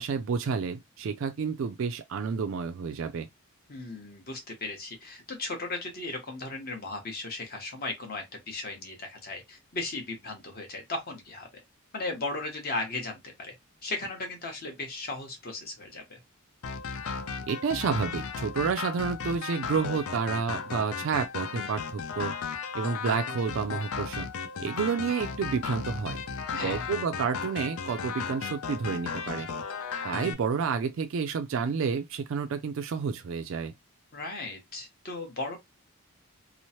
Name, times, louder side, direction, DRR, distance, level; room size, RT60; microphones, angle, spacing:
voice 1, 0.0-3.3 17.5-22.3 22.7-24.3 24.6-26.2 26.6-29.5 30.0-33.7, right 5 dB, 65° right, 0.3 m, -30 dB
voice 2, 3.7-11.5 11.9-13.5 13.8-16.2 26.5-26.9 34.1-35.6, left 2 dB, 45° left, 0.9 m, -36 dB
sound 1, 16.6-30.3, left 5 dB, 80° left, 0.5 m, -35 dB
3.0 x 2.0 x 2.8 m
head